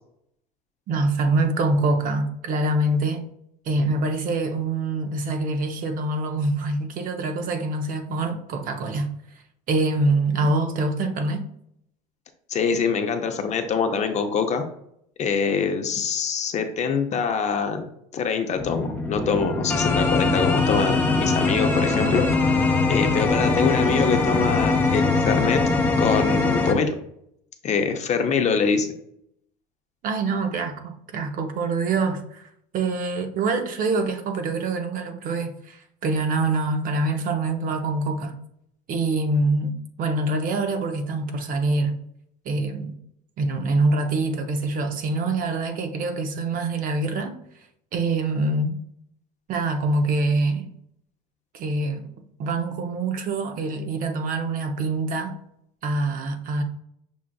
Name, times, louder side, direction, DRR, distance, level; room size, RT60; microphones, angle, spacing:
voice 1, 0.9-3.2 3.7-9.1 9.7-11.4 30.0-32.5 32.7-38.3 38.9-39.7 40.0-42.0 42.4-42.9 43.4-47.4 47.9-48.8 49.5-50.7 51.5-52.1 52.4-55.4 55.8-56.6, right 2 dB, 45° right, 0.7 m, -25 dB
voice 2, 12.5-14.6 15.2-22.2 22.9-25.6 26.0-26.9 27.6-28.9, left 5 dB, 40° left, 0.6 m, -24 dB
sound 1, 18.6-26.7, left 3 dB, 10° left, 0.8 m, -22 dB
6.1 x 2.4 x 2.3 m
supercardioid pair, 95°, 19 cm